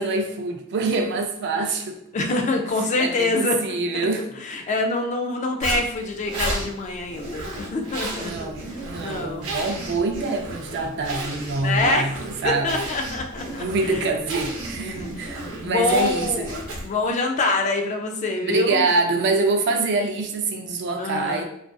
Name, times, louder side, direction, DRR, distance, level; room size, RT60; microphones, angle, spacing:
voice 1, 0.0-2.0 3.0-4.3 8.2-12.8 13.6-16.8 18.4-21.4, right 3 dB, 55° right, 4 dB, 0.4 m, -25 dB
voice 2, 2.1-3.6 4.4-8.5 9.0-9.5 11.6-12.0 12.4-14.1 14.8-15.1 15.4-16.5 16.8-18.9 21.0-21.4, left 3 dB, 35° left, 3 dB, 0.3 m, -25 dB
Zipper (clothing), 5.6-17.1, right 2 dB, 90° right, 0.8 m, -33 dB
2.5 x 2.4 x 2.2 m, 0.76 s
head